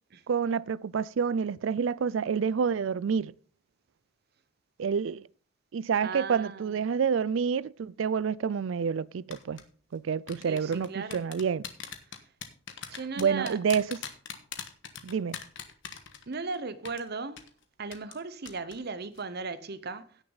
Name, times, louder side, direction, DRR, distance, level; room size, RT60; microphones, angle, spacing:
voice 1, 0.3-3.3 4.8-5.2 5.7-9.6 9.9-11.6 13.2-14.0 15.0-15.4, right 6 dB, 70° right, 0.4 m, -28 dB
voice 2, 6.0-6.7 10.4-11.2 12.9-13.6 16.3-17.4 17.8-20.2, right 4 dB, 55° right, 0.9 m, -37 dB
sound 1, 9.3-9.6 10.3-16.5 16.8-17.0 17.4-17.5 17.9-18.2 18.5-18.7 19.0-19.2, left 8 dB, 65° left, 1.4 m, -40 dB
16.5 x 6.6 x 4.0 m
head